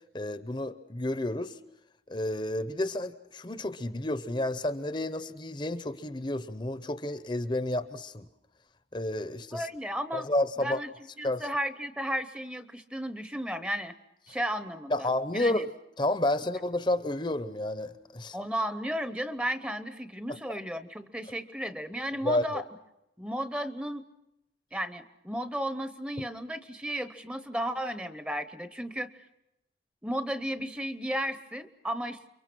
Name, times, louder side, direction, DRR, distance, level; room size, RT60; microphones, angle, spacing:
voice 1, 0.1-1.5 2.1-8.3 8.9-9.7 10.1-10.8 11.2-11.5 14.9-15.7 16.0-18.4 20.3-20.4 22.2-22.5, left 1 dB, 25° left, 12 dB, 0.8 m, -30 dB
voice 2, 9.5-10.3 10.6-10.9 11.2-13.9 14.3-15.1 15.3-15.6 18.3-22.6 23.2-24.0 24.7-29.1 30.0-32.2, equal, 5° right, 12 dB, 0.9 m, -34 dB
29.5 x 24.0 x 6.2 m, 0.88 s
head